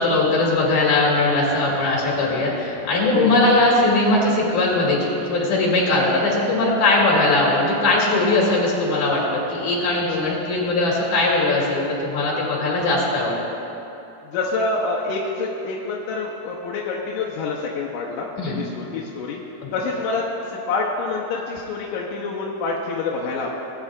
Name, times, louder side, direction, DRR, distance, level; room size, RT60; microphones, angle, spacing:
voice 1, 0.0-9.2 9.5-13.4 18.4-18.6 19.6-19.7, left 2 dB, 65° left, -4 dB, 3.5 m, -20 dB
voice 2, 3.1-3.5 14.2-19.4 19.7-23.5, left 4 dB, 90° left, -4 dB, 2.4 m, -26 dB
19.0 x 8.9 x 2.4 m, 2.9 s
omnidirectional pair, 3.6 m